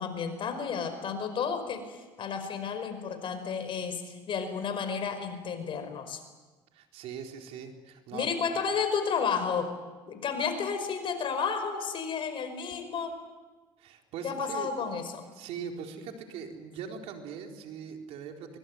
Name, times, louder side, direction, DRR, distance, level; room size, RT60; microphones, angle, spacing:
voice 1, 0.0-6.2 8.1-9.7 10.1-13.2 14.2-15.2, left 6 dB, 50° left, 8 dB, 5.2 m, -32 dB
voice 2, 6.7-8.3 13.8-14.7 15.3-18.6, right 7 dB, 70° right, 3 dB, 4.0 m, -41 dB
23.5 x 22.5 x 9.5 m, 1.3 s
supercardioid pair, 80°, 11 cm